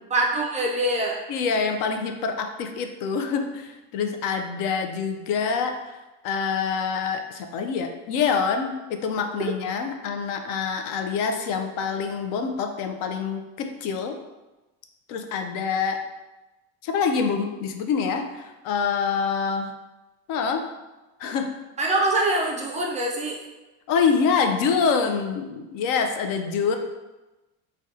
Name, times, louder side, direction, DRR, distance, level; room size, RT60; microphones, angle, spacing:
voice 1, 0.1-1.2 9.4-9.5 21.8-23.4, right 2 dB, 20° right, -1 dB, 0.3 m, -24 dB
voice 2, 1.3-6.0 6.2-14.2 15.1-16.0 16.8-19.7 20.3-20.6 21.2-21.5 23.9-26.8, left 5 dB, 65° left, 5 dB, 0.5 m, -26 dB
2.6 x 2.2 x 3.6 m, 1.1 s
supercardioid pair, 115°, 36 cm